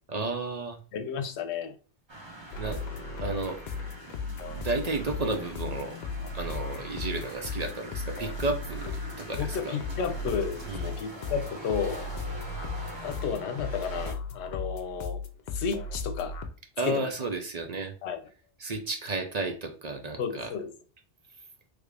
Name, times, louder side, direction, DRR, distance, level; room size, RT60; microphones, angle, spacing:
voice 1, 0.1-0.8 2.6-2.8 3.2-3.6 4.5-6.0 6.3-9.8 10.7-10.9 16.8-17.9 18.6-20.5, right 3 dB, 50° right, 0.5 m, -32 dB
voice 2, 0.9-1.7 9.4-12.0 13.0-15.2 15.5-16.4 16.8-17.1 18.0-18.2 20.2-20.7, left 6 dB, 85° left, 0.9 m, -32 dB
sound 1, 2.1-14.1, right 1 dB, 30° right, 0.8 m, -44 dB
sound 2, 2.5-16.5, left 4 dB, 55° left, 0.5 m, -36 dB
3.3 x 2.4 x 3.3 m
omnidirectional pair, 1.1 m